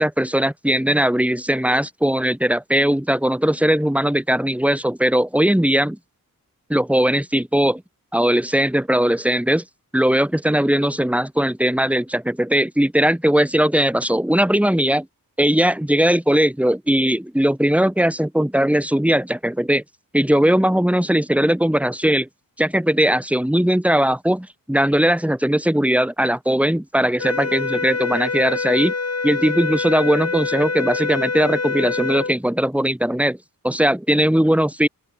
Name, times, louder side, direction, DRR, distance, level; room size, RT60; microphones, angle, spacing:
voice 1, 0.0-6.0 6.7-7.8 8.1-9.6 9.9-15.0 15.4-19.8 20.1-22.3 22.6-28.9 29.2-33.4 33.6-34.9, equal, 5° right, 2.3 m, -19 dB
sound 1, 27.2-32.4, left 3 dB, 45° left, 3.6 m, -25 dB
open air
wide cardioid pair, 80°, 36 cm